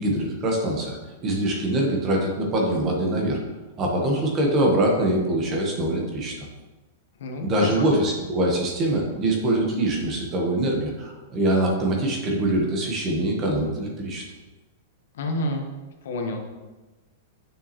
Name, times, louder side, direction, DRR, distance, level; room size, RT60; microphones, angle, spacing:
voice 1, 0.0-3.4 3.8-6.4 7.4-14.2, right 1 dB, 20° right, 0 dB, 1.1 m, -24 dB
voice 2, 7.2-7.9 15.1-15.7 16.0-16.4, left 2 dB, 70° left, 3 dB, 1.1 m, -28 dB
6.9 x 6.8 x 3.0 m, 1.2 s
supercardioid pair, 170°, 0 cm